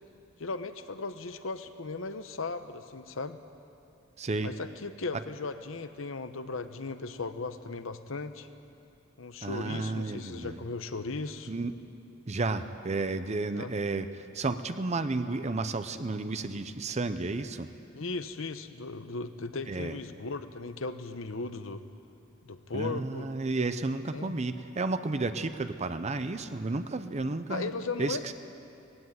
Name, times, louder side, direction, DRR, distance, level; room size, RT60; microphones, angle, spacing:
voice 1, 0.4-3.4 4.4-8.5 9.2-11.5 13.5-13.7 17.9-21.8 22.4-23.3 24.1-24.3 27.5-28.3, left 3 dB, 70° left, 10 dB, 0.9 m, -37 dB
voice 2, 4.2-4.5 9.4-10.6 11.5-11.7 12.3-17.7 19.7-20.0 22.7-27.7 28.0-28.3, right 3 dB, 35° right, 10 dB, 0.6 m, -32 dB
18.5 x 15.5 x 9.4 m, 2.7 s
head